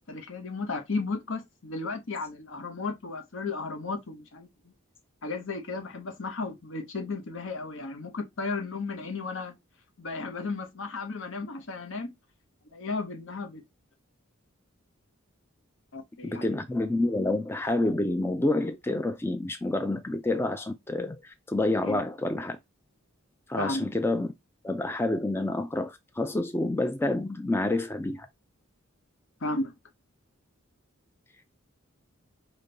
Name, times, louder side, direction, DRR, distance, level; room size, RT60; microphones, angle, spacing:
voice 1, 0.0-4.7 5.2-9.6 10.0-12.1 12.7-13.6 15.9-16.5 21.8-22.0 23.6-23.9 29.4-29.7, left 3 dB, 65° left, 0.9 m, -34 dB
voice 2, 16.2-22.6 23.5-24.3 24.6-28.3, left 2 dB, 10° left, 0.3 m, -28 dB
5.1 x 2.2 x 3.9 m
head